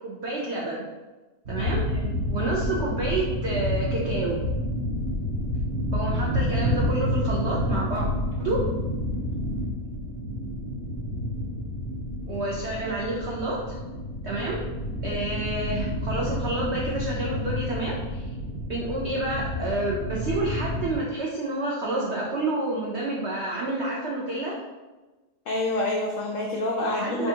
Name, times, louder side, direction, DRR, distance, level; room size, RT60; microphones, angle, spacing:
voice 1, 0.0-0.9 1.5-1.8 2.2-4.4 5.9-8.0 8.4-8.6 12.3-13.8 14.2-14.6 15.0-18.3 18.7-24.6 26.9-27.3, right 2 dB, 85° right, -4 dB, 0.5 m, -29 dB
sound 1, 1.4-21.0, left 1 dB, 45° right, 0.8 m, -29 dB
voice 2, 1.9-2.2 25.5-27.3, left 2 dB, 90° left, -1 dB, 0.6 m, -27 dB
5.8 x 2.5 x 2.8 m, 1.2 s
omnidirectional pair, 1.9 m